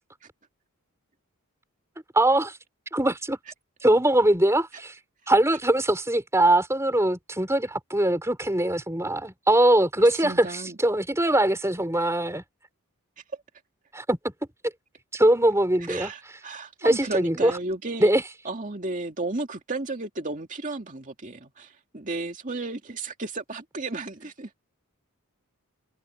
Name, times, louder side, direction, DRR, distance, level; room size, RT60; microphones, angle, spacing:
voice 1, 2.1-2.6 2.9-3.4 3.8-4.9 5.3-12.4 13.9-14.2 15.1-16.4 16.8-17.5 18.0-18.2, right 1 dB, 15° right, 4.7 m, -22 dB
voice 2, 10.0-10.8 15.9-18.1 18.4-24.5, right 2 dB, 35° right, 2.3 m, -33 dB
head